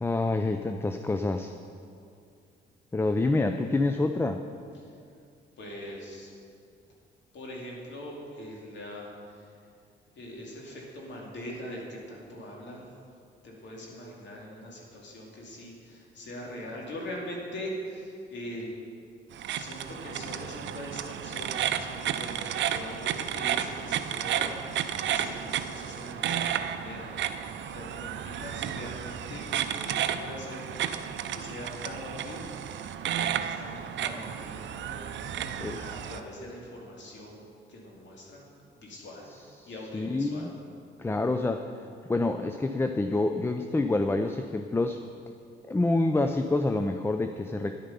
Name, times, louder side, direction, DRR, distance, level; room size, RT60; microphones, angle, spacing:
voice 1, 0.0-1.5 2.9-4.4 35.6-35.8 39.6-40.5 41.0-41.6 42.1-45.0 45.7-47.8, left 2 dB, 10° left, 7 dB, 0.4 m, -27 dB
voice 2, 5.6-6.3 7.3-9.6 10.1-13.0 13.4-18.7 19.5-27.1 27.7-29.5 29.8-30.8 31.3-32.5 33.1-35.4 35.7-37.4 37.7-38.5 38.8-39.3 39.6-40.5, left 1 dB, 65° left, -2 dB, 2.6 m, -42 dB
sound 1, 19.3-36.2, right 9 dB, 65° right, 0.6 m, -32 dB
10.5 x 8.8 x 5.5 m, 2.4 s
cardioid pair, 90°, 20 cm